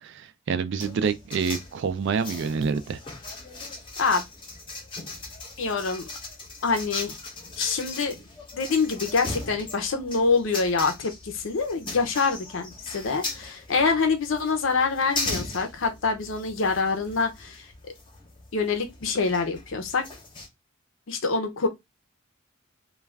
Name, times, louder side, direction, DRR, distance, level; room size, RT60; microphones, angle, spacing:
voice 1, 0.0-3.0, right 5 dB, 60° right, 0.3 m, -27 dB
sound 1, 0.8-20.5, left 2 dB, 25° left, 0.7 m, -38 dB
voice 2, 5.6-6.1 6.6-7.2 7.6-8.2 8.5-17.7 18.5-20.0 21.1-21.7, left 4 dB, 70° left, 0.6 m, -25 dB
2.4 x 2.2 x 3.2 m
head